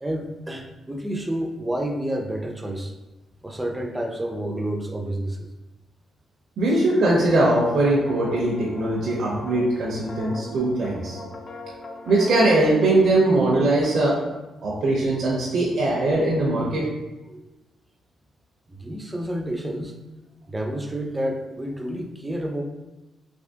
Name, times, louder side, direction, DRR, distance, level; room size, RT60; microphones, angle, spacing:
voice 1, 0.0-2.9 3.4-5.5 6.7-6.8 17.3-17.5 18.7-20.0 20.5-22.6, right 1 dB, 15° right, 4 dB, 0.4 m, -29 dB
voice 2, 6.6-11.2 12.1-14.2 14.6-16.9, right 2 dB, 65° right, -5 dB, 0.6 m, -21 dB
sound 1, 7.0-13.9, left 3 dB, 45° left, 0.5 m, -40 dB
3.4 x 2.9 x 2.7 m, 1.1 s
cardioid pair, 105°, 0 cm